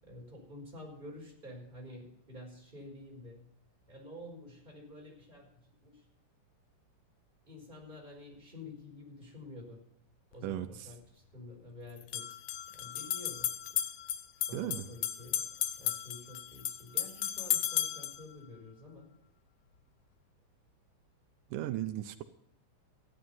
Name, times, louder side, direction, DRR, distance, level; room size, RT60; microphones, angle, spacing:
voice 1, 0.0-3.5 3.9-6.0 7.5-9.9 10.3-12.4 12.7-13.6 14.4-19.1, left 2 dB, 15° right, -1 dB, 4.7 m, -49 dB
sound 1, 10.3-10.4 12.0-18.2, left 11 dB, 70° left, 2.0 m, -35 dB
voice 2, 10.4-10.9 14.5-14.9 21.5-22.2, right 13 dB, 85° right, 10 dB, 2.3 m, -36 dB
15.0 x 11.0 x 5.5 m, 0.71 s
omnidirectional pair, 3.7 m